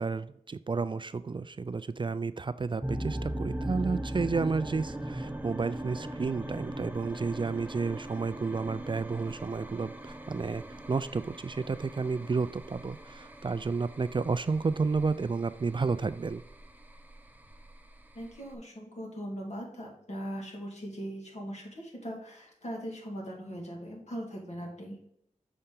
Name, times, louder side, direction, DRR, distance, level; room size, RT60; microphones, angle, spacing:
voice 1, 0.0-16.4, right 4 dB, 40° right, 13 dB, 0.3 m, -31 dB
sound 1, 2.8-18.6, right 1 dB, 15° right, 0.8 m, -39 dB
voice 2, 18.1-25.0, equal, 55° left, -1 dB, 2.2 m, -40 dB
6.8 x 4.3 x 3.7 m, 0.74 s
cardioid pair, 45°, 13 cm